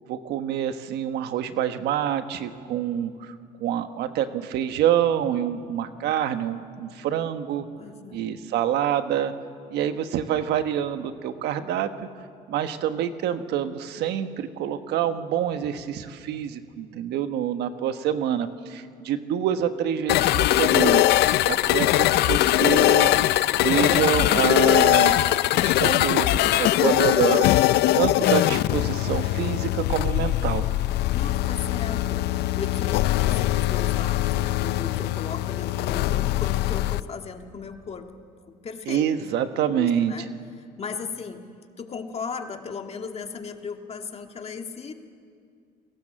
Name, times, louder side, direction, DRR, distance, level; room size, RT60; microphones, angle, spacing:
voice 1, 0.1-7.7 8.1-9.3 9.7-11.9 12.5-21.0 21.4-23.1 23.6-25.1 25.5-27.5 27.9-30.6 38.9-40.1, right 10 dB, 80° right, 9 dB, 1.3 m, -26 dB
voice 2, 7.8-8.3 27.9-29.4 30.0-30.2 31.1-38.1 38.6-39.1 39.5-40.3 40.6-41.4 41.8-44.9, left 5 dB, 35° left, 5 dB, 2.0 m, -37 dB
sound 1, 20.1-37.0, left 15 dB, 80° left, 0.6 m, -21 dB
28.5 x 19.0 x 7.7 m, 2.2 s
cardioid pair, 110°, 17 cm